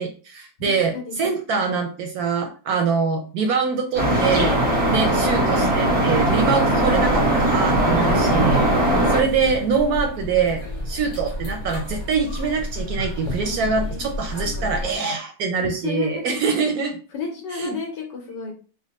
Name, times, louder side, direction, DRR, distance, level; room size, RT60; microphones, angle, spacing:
voice 1, 0.0-4.5 4.9-8.6 9.1-17.0 17.5-17.8, right 5 dB, 70° right, 4 dB, 0.9 m, -24 dB
voice 2, 0.9-1.6 4.1-5.0 8.8-9.4 13.3-14.0 15.5-16.4 17.1-18.5, left 4 dB, 80° left, 1 dB, 1.4 m, -32 dB
sound 1, 4.0-9.2, right 1 dB, 25° right, 0.7 m, -19 dB
sound 2, 6.8-15.0, left 1 dB, 25° left, 0.6 m, -31 dB
3.6 x 2.0 x 3.9 m, 0.38 s
omnidirectional pair, 1.9 m